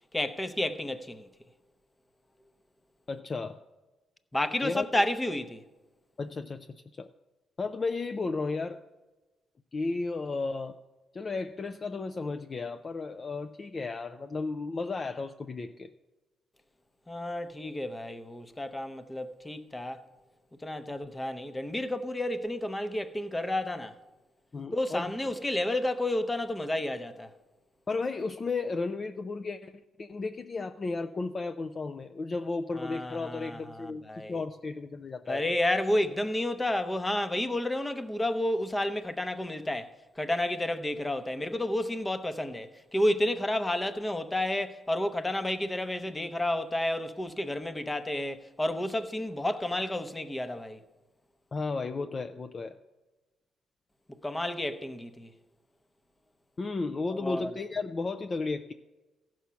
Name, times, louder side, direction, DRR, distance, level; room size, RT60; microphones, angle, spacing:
voice 1, 0.1-1.3 4.3-5.6 17.1-20.0 20.6-24.0 24.7-27.3 32.8-34.4 35.3-50.8 54.2-55.3 57.1-57.5, left 1 dB, 15° left, 0.8 m, -31 dB
voice 2, 3.1-3.6 4.6-4.9 6.2-7.1 7.6-8.8 9.7-10.8 11.1-15.9 20.9-21.0 24.5-25.2 27.9-35.5 51.5-52.8 56.6-58.7, left 3 dB, 35° left, 0.4 m, -34 dB
14.5 x 6.2 x 5.7 m
cardioid pair, 90°, 0 cm